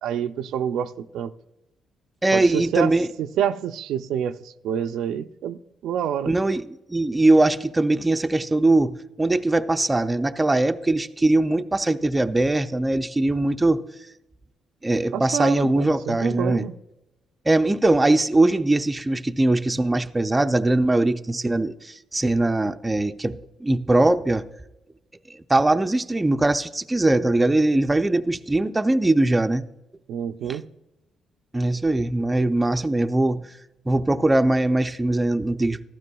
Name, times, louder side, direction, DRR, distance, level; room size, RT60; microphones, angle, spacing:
voice 1, 0.0-1.3 2.3-6.4 15.1-16.8 30.1-30.7, right 9 dB, 80° right, 0.4 m, -28 dB
voice 2, 2.2-3.1 6.3-6.6 6.9-13.8 14.8-16.7 17.5-24.4 25.3-29.6 30.4-30.6 31.5-33.4 33.9-35.8, right 2 dB, 15° right, 0.5 m, -21 dB
15.0 x 12.5 x 2.3 m
cardioid pair, 90°, 0 cm